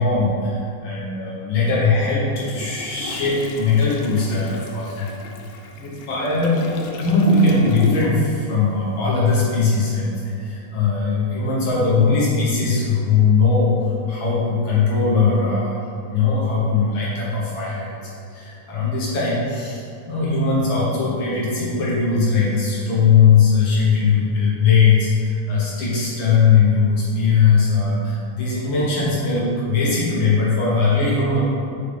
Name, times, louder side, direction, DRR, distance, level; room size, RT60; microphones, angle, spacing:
voice 1, 0.0-5.2 5.8-6.6 7.0-13.8 14.1-15.8 16.1-18.0 18.3-31.4, left 4 dB, 55° left, -7 dB, 1.5 m, -19 dB
Toilet flush, 2.4-8.4 8.6-8.9, left 3 dB, 90° left, 2.2 m, -33 dB
6.5 x 5.2 x 3.4 m, 2.6 s
omnidirectional pair, 3.5 m